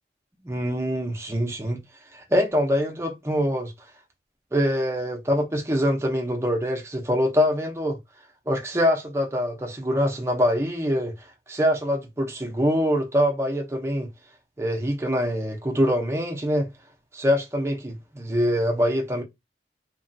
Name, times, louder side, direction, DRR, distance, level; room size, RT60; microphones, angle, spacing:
voice 1, 0.4-1.8 2.3-3.7 4.5-8.0 8.5-11.1 11.5-14.1 14.6-16.7 17.1-19.2, equal, 15° right, 0.6 m, -24 dB
2.9 x 2.3 x 2.6 m
head